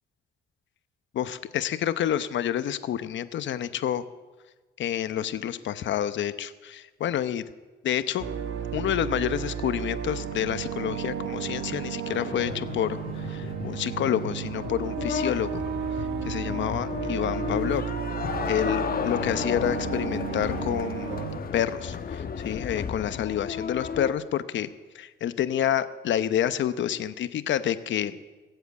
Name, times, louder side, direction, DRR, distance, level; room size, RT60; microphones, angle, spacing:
voice 1, 1.1-4.0 4.8-7.4 7.8-8.2 8.7-15.6 16.0-17.8 18.4-21.2 21.5-24.7 24.9-28.2, left 10 dB, 70° left, 13 dB, 0.9 m, -28 dB
sound 1, 8.2-21.4, right 8 dB, 85° right, 1.2 m, -33 dB
sound 2, 12.1-24.1, left 6 dB, 45° left, 1.2 m, -33 dB
20.5 x 8.1 x 8.3 m, 1.3 s
cardioid pair, 90°, 20 cm